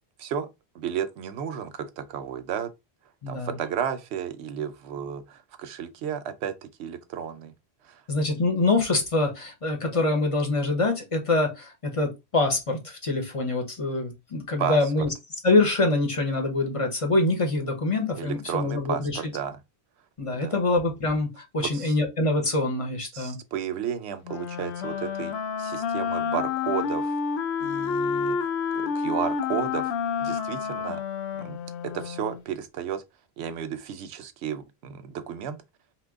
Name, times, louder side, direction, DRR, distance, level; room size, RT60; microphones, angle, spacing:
voice 1, 0.7-2.7 3.3-7.5 7.8-8.0 14.6-14.8 18.2-19.6 20.3-20.6 21.6-22.0 23.1-25.3 25.6-27.1 27.6-31.0 31.3-31.6 31.8-33.0 33.4-35.6, right 8 dB, 90° right, 0.8 m, -33 dB
voice 2, 3.2-3.6 8.1-15.1 15.4-19.2 20.2-23.4, left 2 dB, 35° left, 0.7 m, -25 dB
Wind instrument woodwind instrument, 24.2-32.4, left 6 dB, 85° left, 0.9 m, -29 dB
2.9 x 2.2 x 3.5 m
omnidirectional pair, 1.1 m